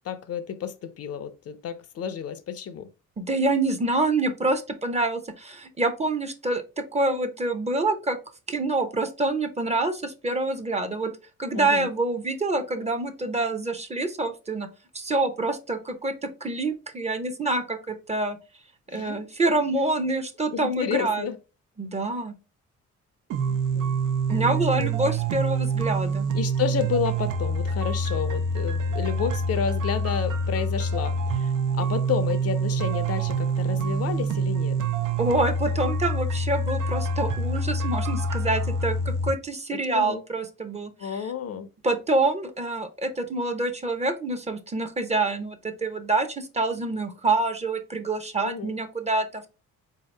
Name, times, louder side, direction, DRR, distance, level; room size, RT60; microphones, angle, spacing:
voice 1, 0.0-2.9 11.5-11.9 18.9-19.2 20.5-21.4 23.5-24.0 24.3-25.1 26.3-34.8 39.9-40.2 41.0-41.7 48.4-48.7, left 7 dB, 55° left, 0.5 m, -31 dB
voice 2, 3.2-8.2 8.5-11.1 11.4-14.7 14.9-18.4 18.9-21.3 21.8-22.3 24.3-26.3 35.2-41.2 41.8-49.5, right 2 dB, 20° right, 0.6 m, -26 dB
sound 1, 23.3-39.3, right 2 dB, 85° right, 0.6 m, -26 dB
3.8 x 2.8 x 3.2 m
cardioid pair, 90°, 30 cm